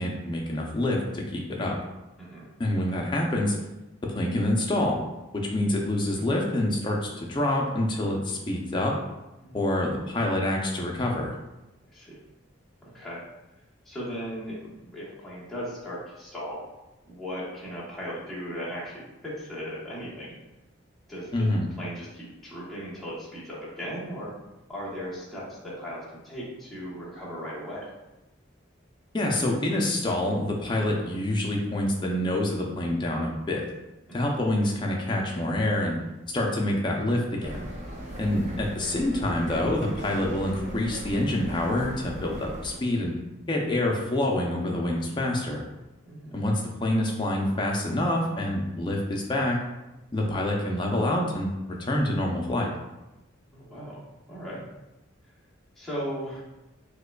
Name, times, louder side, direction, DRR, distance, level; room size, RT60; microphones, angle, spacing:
voice 1, 0.0-1.8 2.6-3.6 4.1-5.0 5.3-8.9 9.5-11.3 21.3-21.7 29.1-33.6 34.1-36.0 36.3-37.7 38.2-43.1 43.5-45.6 46.3-49.6 50.1-52.7, left 1 dB, 25° left, -1 dB, 0.4 m, -26 dB
voice 2, 12.8-13.2 13.8-16.6 17.1-20.4 21.1-21.5 21.8-24.3 24.7-27.9 34.1-34.3 38.2-38.4 46.1-46.4 53.5-54.0 54.3-54.6 55.8-56.4, equal, ahead, -9 dB, 0.9 m, -37 dB
sound 1, 37.4-42.8, right 1 dB, 35° right, 0.6 m, -38 dB
4.8 x 2.2 x 2.2 m, 0.99 s
head